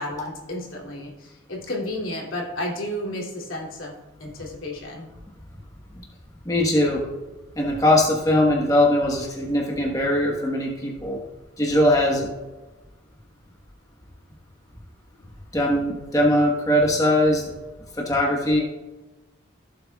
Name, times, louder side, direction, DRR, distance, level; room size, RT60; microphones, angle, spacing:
voice 1, 0.0-3.9 4.2-5.1, left 1 dB, 90° left, -2 dB, 2.8 m, -32 dB
voice 2, 6.4-7.0 7.6-11.2 11.6-12.3 15.5-17.4 18.0-18.6, left 1 dB, 15° left, -1 dB, 1.3 m, -20 dB
16.0 x 7.7 x 2.4 m, 1.1 s
head